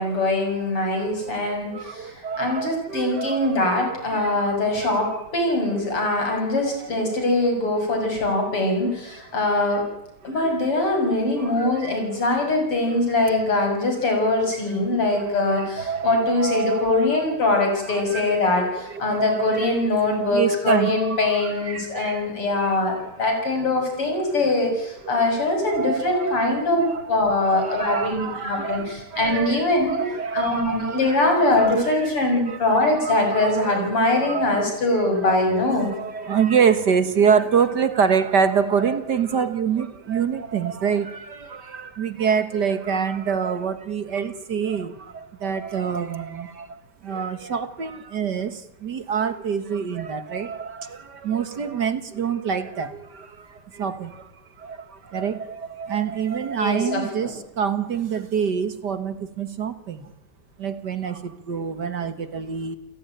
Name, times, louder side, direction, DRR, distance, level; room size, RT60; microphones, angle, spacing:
voice 1, 0.0-2.1 2.4-5.1 5.3-9.8 10.2-30.1 30.3-35.9 56.6-57.3, left 2 dB, 85° left, 3 dB, 7.6 m, -22 dB
voice 2, 0.8-4.9 5.9-6.1 6.8-6.9 9.1-9.7 10.2-10.7 11.1-12.2 13.3-13.8 14.7-14.8 15.1-17.4 17.8-19.7 20.1-22.3 22.6-23.1 25.0-27.1 27.4-32.1 32.4-54.3 54.6-60.1 60.6-62.8, right 6 dB, 50° right, 12 dB, 2.0 m, -27 dB
29.5 x 17.0 x 9.2 m, 0.87 s
omnidirectional pair, 2.4 m